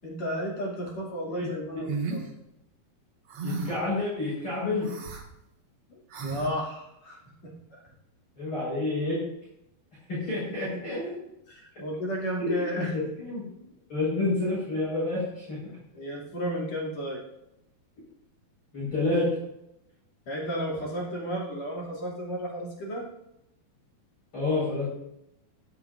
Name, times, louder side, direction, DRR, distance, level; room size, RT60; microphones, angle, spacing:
voice 1, 0.0-2.2 5.9-7.8 11.5-12.9 15.9-17.2 20.3-23.1, equal, 45° left, -3 dB, 3.5 m, -33 dB
sound 1, 1.9-2.2 3.3-3.9 4.8-5.2 6.1-6.5, right 4 dB, 50° right, 2.0 m, -33 dB
voice 2, 3.4-4.9 8.4-9.2 10.1-11.2 12.4-13.4 13.9-15.6 18.7-19.3 24.3-24.9, left 2 dB, 30° left, -9 dB, 5.7 m, -29 dB
19.5 x 9.0 x 2.6 m, 0.82 s
omnidirectional pair, 4.5 m